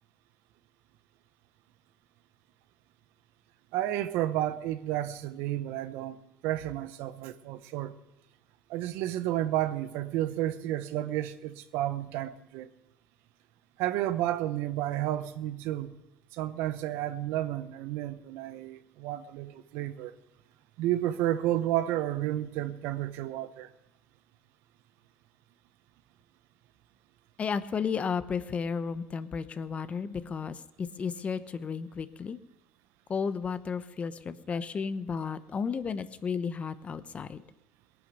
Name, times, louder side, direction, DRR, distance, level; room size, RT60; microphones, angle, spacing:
voice 1, 3.7-6.2 6.4-7.9 8.7-12.7 13.8-16.0 16.3-20.1 20.8-23.7, right 13 dB, 75° right, 0.9 m, -31 dB
voice 2, 27.4-32.4 33.1-37.4, left 6 dB, 35° left, 1.0 m, -33 dB
18.5 x 11.0 x 6.8 m
supercardioid pair, 95°, 4 cm